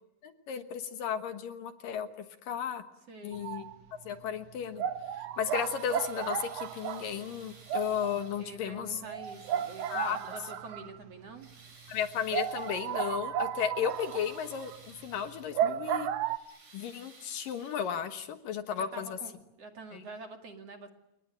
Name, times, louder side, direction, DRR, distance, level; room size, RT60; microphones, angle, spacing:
voice 1, 0.2-2.8 3.2-3.7 4.1-4.8 5.4-9.0 9.9-10.2 11.9-16.1 16.7-19.2 19.9-20.0, left 8 dB, 65° left, 9 dB, 2.8 m, -34 dB
voice 2, 3.1-3.4 8.4-11.5 18.7-20.9, right 3 dB, 45° right, 5 dB, 2.8 m, -46 dB
sound 1, 3.3-3.8 4.1-4.2 4.8-11.1 11.5-11.6 11.9-12.0 12.3-16.4, right 9 dB, 80° right, 1.4 m, -34 dB
sound 2, 5.3-8.7 9.1-10.7 11.2-13.1 13.6-15.6 16.1-18.3 19.3-19.4 20.1-20.2, right 3 dB, 65° right, 9.0 m, -56 dB
30.0 x 19.5 x 9.1 m, 0.86 s
omnidirectional pair, 4.5 m